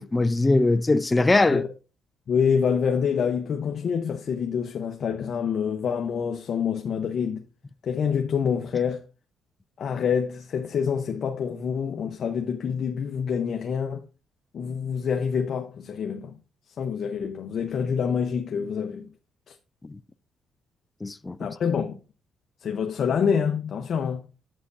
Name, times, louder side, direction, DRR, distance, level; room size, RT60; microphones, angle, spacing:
voice 1, 0.0-1.6 19.8-20.0 21.0-21.4, left 2 dB, 20° left, 0.4 m, -21 dB
voice 2, 2.3-7.4 7.8-9.0 9.8-14.1 14.5-16.4 16.8-19.1 19.5-19.6 21.4-22.0 22.6-24.2, left 7 dB, 60° left, 0.8 m, -26 dB
8.3 x 7.6 x 2.6 m
cardioid pair, 90°, 0 cm